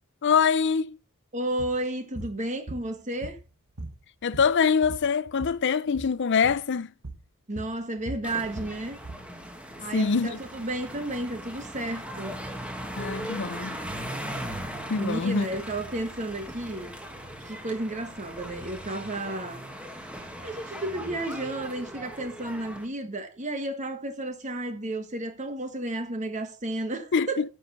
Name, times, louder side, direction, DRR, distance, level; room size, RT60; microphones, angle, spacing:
voice 1, 0.2-1.0 4.2-6.9 9.9-10.4 13.0-13.8 14.9-15.5 27.1-27.5, left 6 dB, 55° left, 0.5 m, -24 dB
voice 2, 1.3-3.4 7.5-9.0 9.8-12.4 15.0-17.0 17.4-19.6 20.4-27.5, right 1 dB, 35° right, 1.4 m, -32 dB
sound 1, 1.6-1.8 2.1-2.4 2.7-3.5 3.8-5.6 5.9-6.1 6.4-6.6 7.0-7.3 7.6-9.3, right 2 dB, 80° right, 1.6 m, -39 dB
sound 2, 8.2-22.8, right 1 dB, 5° right, 1.6 m, -39 dB
9.8 x 6.5 x 5.6 m
head